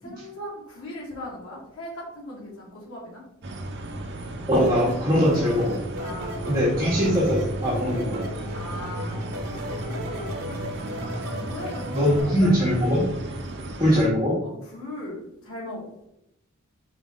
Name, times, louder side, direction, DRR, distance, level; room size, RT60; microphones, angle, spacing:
voice 1, 0.0-3.2 6.0-6.7 8.5-12.8 14.4-16.1, left 1 dB, 70° left, -4 dB, 1.9 m, -39 dB
sound 1, 3.4-14.1, right 1 dB, 50° right, 0.8 m, -34 dB
voice 2, 4.5-5.8 6.5-8.3 11.9-13.0 13.8-14.3, equal, 15° right, -9 dB, 2.1 m, -21 dB
sound 2, 4.5-12.2, equal, 70° right, 1.3 m, -36 dB
5.2 x 5.2 x 3.7 m, 0.80 s
head